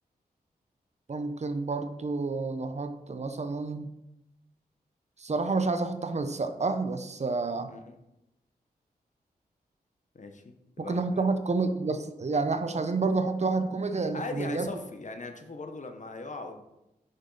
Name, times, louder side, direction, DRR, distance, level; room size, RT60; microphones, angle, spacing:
voice 1, 1.1-3.9 5.2-7.7 10.8-14.7, right 3 dB, 45° right, 8 dB, 0.7 m, -29 dB
voice 2, 10.1-11.2 14.1-16.6, left 3 dB, 50° left, 6 dB, 0.9 m, -40 dB
6.1 x 5.2 x 4.0 m, 0.90 s
cardioid pair, 45°, 16 cm